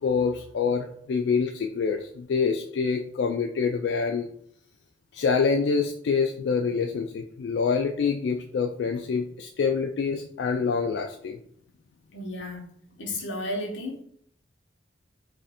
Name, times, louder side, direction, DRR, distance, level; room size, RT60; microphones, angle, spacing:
voice 1, 0.0-4.3 5.1-11.4, left 5 dB, 65° left, 4 dB, 0.3 m, -26 dB
voice 2, 12.1-12.7 13.0-14.0, left 1 dB, 85° left, 1 dB, 1.0 m, -33 dB
3.1 x 2.6 x 4.1 m, 0.64 s
head